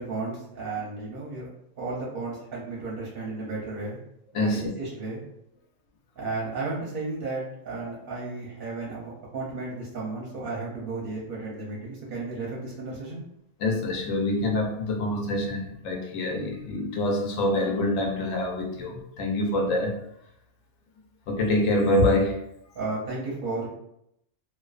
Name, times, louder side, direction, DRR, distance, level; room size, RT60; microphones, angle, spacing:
voice 1, 0.0-1.5 1.8-4.0 4.3-5.2 6.2-13.2 22.7-23.7, right 3 dB, 55° right, -4 dB, 0.6 m, -33 dB
voice 2, 4.3-4.7 7.9-8.0 13.6-20.0 21.3-22.4, left 1 dB, 80° left, 2 dB, 0.9 m, -25 dB
2.5 x 2.2 x 2.3 m, 0.77 s
omnidirectional pair, 1.3 m